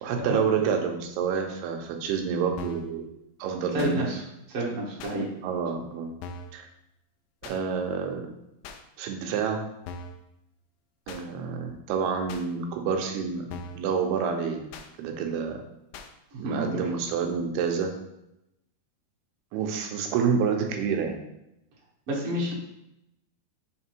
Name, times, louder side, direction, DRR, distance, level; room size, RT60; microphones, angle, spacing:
voice 1, 0.0-3.0 3.4-4.1 5.4-6.1 6.5-6.6 7.4-8.2 9.0-9.6 11.1-14.7 15.0-15.6 16.4-18.0 19.5-21.2, right 6 dB, 80° right, 4 dB, 2.7 m, -28 dB
sound 1, 2.6-2.9 3.8-4.0 5.0-5.2 6.2-6.6 7.4-7.6 8.6-8.8 9.9-10.2 11.1-11.2 12.3-12.5 13.5-13.9 14.7-14.9 15.9-16.1, left 3 dB, 85° left, 1.9 m, -40 dB
voice 2, 3.7-4.2 4.5-5.3 16.3-16.7 22.1-22.5, right 1 dB, 60° right, -5 dB, 1.6 m, -29 dB
6.0 x 4.0 x 4.5 m, 0.85 s
omnidirectional pair, 4.6 m